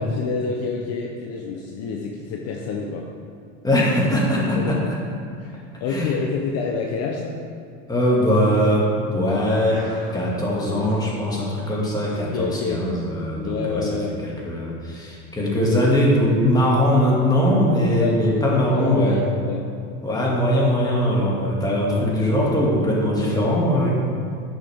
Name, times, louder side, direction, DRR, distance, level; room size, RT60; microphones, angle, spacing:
voice 1, 0.0-3.1 4.5-4.9 5.4-7.4 12.3-12.9 13.4-14.2 17.9-18.2 18.5-19.7, left 5 dB, 45° left, 1 dB, 0.8 m, -28 dB
voice 2, 3.6-4.9 5.9-6.1 7.9-9.8 10.1-19.2 20.0-23.9, equal, 10° left, -4 dB, 2.0 m, -21 dB
sound 1, 9.4-10.3 10.6-11.0 12.0-12.2, right 1 dB, 10° right, 1.8 m, -42 dB
11.0 x 6.5 x 3.5 m, 2.4 s
supercardioid pair, 135°, 33 cm